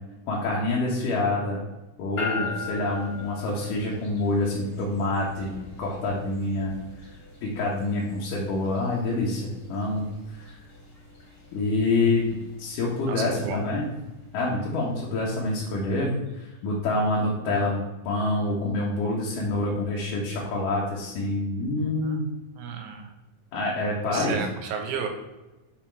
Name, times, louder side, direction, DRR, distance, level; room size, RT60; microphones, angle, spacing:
voice 1, 0.3-1.6 2.0-6.7 7.4-10.0 10.3-10.5 11.5-12.3 12.6-13.9 14.3-22.3 23.5-24.4, left 2 dB, 75° left, -4 dB, 2.6 m, -27 dB
sound 1, 2.2-16.4, left 4 dB, 35° left, 2.0 m, -41 dB
voice 2, 13.1-13.6 22.0-22.3 22.6-23.1 24.1-25.1, right 6 dB, 70° right, 3 dB, 2.2 m, -33 dB
7.3 x 4.4 x 4.4 m, 1.0 s
omnidirectional pair, 3.8 m